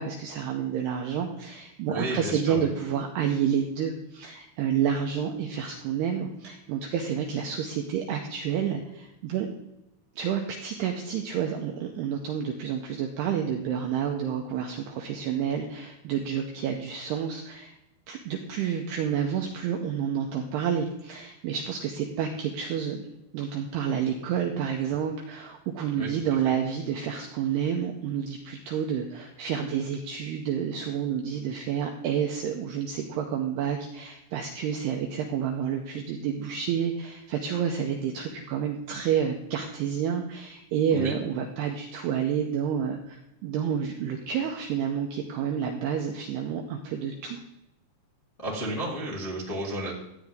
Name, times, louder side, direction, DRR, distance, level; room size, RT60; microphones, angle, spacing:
voice 1, 0.0-9.5 10.2-17.8 18.1-23.1 23.3-47.4, right 8 dB, 85° right, 3 dB, 2.4 m, -29 dB
voice 2, 1.9-2.7 26.0-26.1 26.4-26.5 40.9-41.1 48.4-49.9, right 1 dB, 30° left, -5 dB, 0.6 m, -32 dB
14.5 x 9.1 x 3.6 m, 0.88 s
omnidirectional pair, 5.8 m